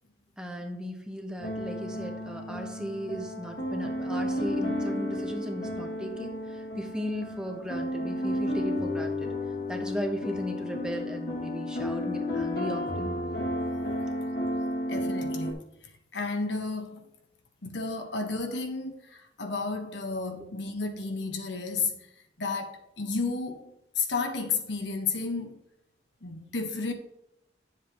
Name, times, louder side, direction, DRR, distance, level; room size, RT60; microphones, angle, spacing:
voice 1, 0.4-9.3 9.7-13.1, equal, 5° right, 1.1 m, -36 dB
sound 1, 1.4-15.5, left 1 dB, 60° left, 1.9 m, -32 dB
voice 2, 14.9-15.7 16.1-17.1 17.6-22.1 22.4-25.6 26.2-26.9, left 4 dB, 75° left, 1.3 m, -32 dB
10.5 x 7.4 x 3.1 m
head